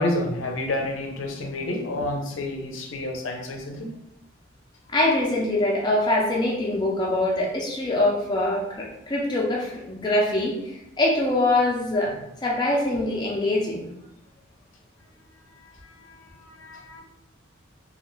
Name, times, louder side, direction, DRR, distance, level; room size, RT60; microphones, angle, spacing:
voice 1, 0.0-3.9 15.8-16.1 16.4-17.0, left 1 dB, 80° left, 2 dB, 0.5 m, -29 dB
voice 2, 4.9-12.1 12.4-13.8, left 1 dB, 20° left, -3 dB, 0.4 m, -24 dB
2.3 x 2.1 x 2.9 m, 0.83 s
head